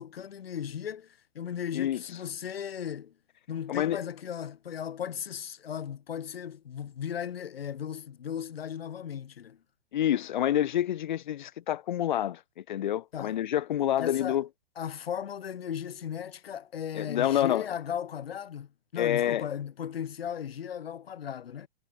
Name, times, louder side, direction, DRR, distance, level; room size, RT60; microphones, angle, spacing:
voice 1, 0.0-3.1 3.5-9.6 13.1-13.4 13.7-14.4 14.8-21.7, left 8 dB, 70° left, 2.4 m, -36 dB
voice 2, 3.7-4.0 9.9-12.4 12.7-14.5 17.0-17.7 19.0-19.4, left 11 dB, 50° left, 1.7 m, -27 dB
hypercardioid pair, 160°, 31 cm